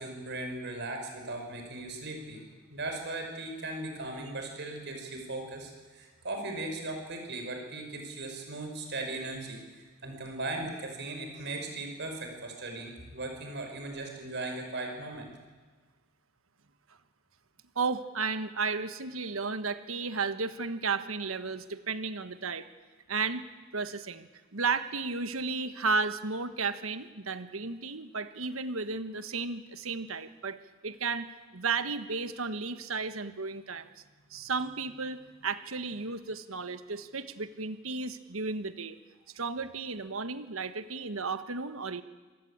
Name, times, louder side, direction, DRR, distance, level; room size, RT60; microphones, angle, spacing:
voice 1, 0.0-2.4 2.7-9.6 10.0-15.3, right 2 dB, 55° right, 3 dB, 6.1 m, -38 dB
voice 2, 17.7-22.7 23.1-23.4 23.7-30.6 30.8-33.9 34.3-39.0 39.3-42.0, right 4 dB, 80° right, 11 dB, 1.4 m, -33 dB
26.5 x 19.0 x 8.7 m, 1.4 s
head